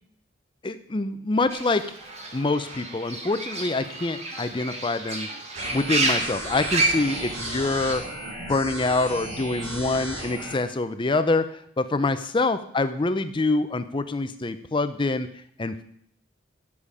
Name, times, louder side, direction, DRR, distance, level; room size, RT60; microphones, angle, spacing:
voice 1, 0.6-1.8 2.3-5.3 5.7-8.0 8.5-15.3 15.6-15.8, left 3 dB, 25° left, 11 dB, 0.5 m, -25 dB
Fowl / Bird, 1.5-8.0, right 2 dB, 30° right, 1.4 m, -30 dB
sound 1, 5.5-10.5, right 1 dB, 70° right, 3.5 m, -35 dB
10.5 x 7.1 x 4.9 m, 0.65 s
head